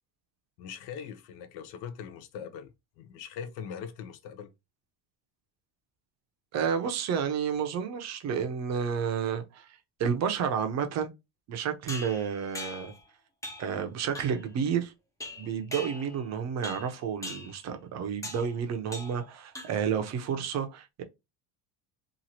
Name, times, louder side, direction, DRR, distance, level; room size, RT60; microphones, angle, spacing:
voice 1, 0.6-4.5, left 7 dB, 70° left, 0.6 m, -41 dB
voice 2, 6.5-11.1 11.5-12.9 13.6-14.9 15.4-21.0, right 7 dB, 40° right, 0.6 m, -31 dB
sound 1, 11.9-13.0 13.4-13.8 14.1-14.5 15.2-16.3 16.6-16.9 17.2-17.6 18.2-18.5 18.9-19.3 19.5-20.0, left 1 dB, 10° left, 0.5 m, -41 dB
3.0 x 2.4 x 2.7 m
cardioid pair, 140°, 41 cm